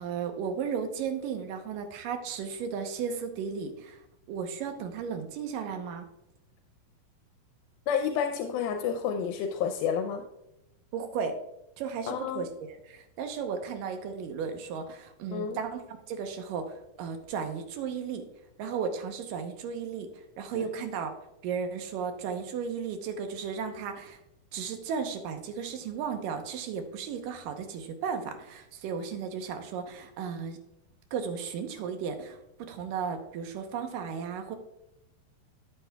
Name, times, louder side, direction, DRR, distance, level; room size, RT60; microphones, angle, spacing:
voice 1, 0.0-4.0 4.3-6.1 10.9-11.4 11.8-18.2 18.6-21.1 21.4-24.2 24.5-30.6 31.1-32.4 32.7-34.6, right 6 dB, 75° right, 6 dB, 2.4 m, -35 dB
voice 2, 7.9-10.2 12.1-12.5 15.3-15.6 20.5-20.7, left 7 dB, 85° left, 5 dB, 2.5 m, -30 dB
12.5 x 8.9 x 2.3 m, 0.88 s
omnidirectional pair, 4.2 m